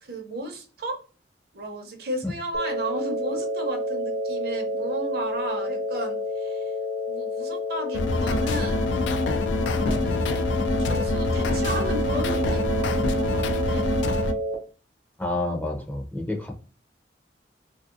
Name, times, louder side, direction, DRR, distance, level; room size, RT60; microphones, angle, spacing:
voice 1, 0.0-1.0 1.5-6.7 7.1-8.9 9.5-10.5 10.8-13.9, right 1 dB, 60° right, 4 dB, 0.7 m, -34 dB
sound 1, 2.5-14.5, left 1 dB, 70° left, 0.8 m, -29 dB
sound 2, 7.9-14.3, left 2 dB, 90° left, 0.4 m, -25 dB
voice 2, 15.2-16.6, left 2 dB, 10° left, 0 dB, 0.5 m, -29 dB
3.1 x 2.7 x 2.4 m, 0.36 s
head